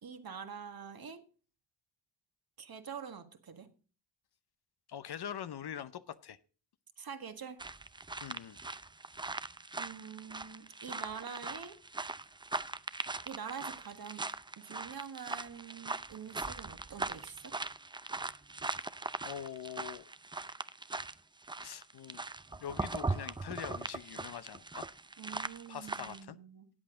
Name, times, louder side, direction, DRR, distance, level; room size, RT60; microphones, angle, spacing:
voice 1, 0.0-1.2 2.6-3.7 7.0-7.6 9.8-11.8 13.2-14.2 14.6-17.6 25.2-26.7, right 7 dB, 50° right, 1.6 m, -45 dB
voice 2, 4.9-6.4 8.2-8.6 19.2-20.1 21.6-22.2 22.5-24.9 25.7-26.4, left 9 dB, 55° left, 0.8 m, -43 dB
sound 1, 7.6-21.1 21.4-26.2, right 3 dB, 10° right, 0.5 m, -40 dB
13.5 x 8.4 x 3.8 m
supercardioid pair, 55°, 47 cm